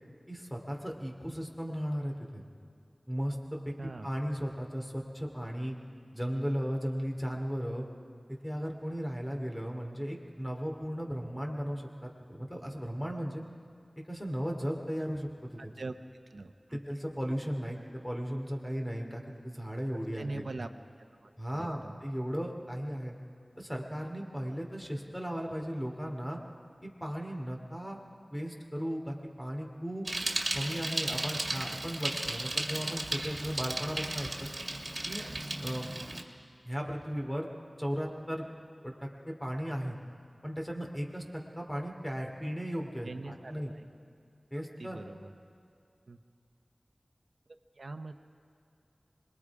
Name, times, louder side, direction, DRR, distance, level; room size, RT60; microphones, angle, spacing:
voice 1, 0.3-2.4 3.1-5.7 6.1-7.9 8.3-13.4 14.1-15.7 16.7-20.5 21.4-23.1 23.6-26.4 26.8-28.0 28.3-30.1 30.5-34.5 35.0-35.2 35.6-35.9 36.6-37.5 37.8-38.5 38.8-40.0 40.4-43.7 44.5-45.0, equal, 15° left, 1 dB, 3.1 m, -36 dB
voice 2, 3.8-4.1 15.6-15.9 16.3-16.8 20.2-20.7 21.2-22.0 43.0-43.5 44.8-45.3 46.1-46.2 47.8-48.1, right 3 dB, 80° right, 8 dB, 1.0 m, -42 dB
Bicycle, 30.1-36.2, right 2 dB, 55° right, 1.9 m, -35 dB
26.0 x 21.5 x 4.9 m, 2.4 s
wide cardioid pair, 50°, 0 cm